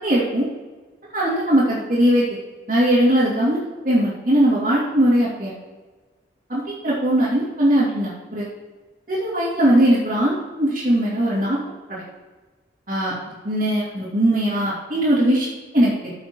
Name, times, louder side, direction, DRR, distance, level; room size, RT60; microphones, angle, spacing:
voice 1, 0.0-0.4 1.1-2.4 2.7-3.6 3.8-5.5 6.5-8.5 9.1-11.6 11.9-12.0 12.9-13.1 13.4-15.5 15.7-16.1, right 1 dB, 45° right, -12 dB, 3.0 m, -19 dB
14.5 x 7.2 x 3.2 m, 1.3 s
head